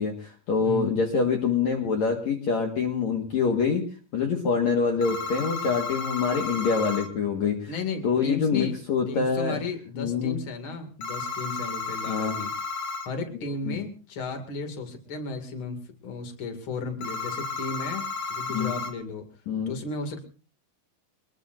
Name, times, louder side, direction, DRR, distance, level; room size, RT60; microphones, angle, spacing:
voice 1, 0.0-3.9 4.1-7.7 8.0-9.6 9.9-10.4 12.1-12.4 13.7-13.8 18.5-18.7 19.5-19.7, left 5 dB, 55° left, 2 dB, 2.7 m, -25 dB
voice 2, 0.6-1.0 7.7-8.8 9.1-12.5 13.1-19.3 19.7-20.2, left 3 dB, 40° left, 5 dB, 2.8 m, -34 dB
sound 1, 5.0-7.1 11.0-13.1 17.0-18.9, left 4 dB, 80° left, 3.7 m, -33 dB
25.0 x 21.0 x 2.6 m, 0.37 s
omnidirectional pair, 4.2 m